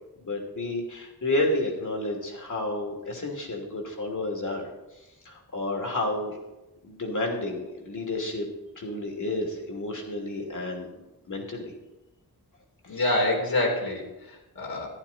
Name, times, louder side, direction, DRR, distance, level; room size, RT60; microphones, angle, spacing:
voice 1, 0.2-4.7 5.2-6.3 6.8-8.5 8.8-10.9 11.3-11.7 12.9-13.0, left 2 dB, 55° left, 1 dB, 3.0 m, -30 dB
voice 2, 12.9-14.9, left 1 dB, 75° left, 0 dB, 3.4 m, -27 dB
14.0 x 11.0 x 4.3 m, 1.0 s
wide cardioid pair, 80°, 36 cm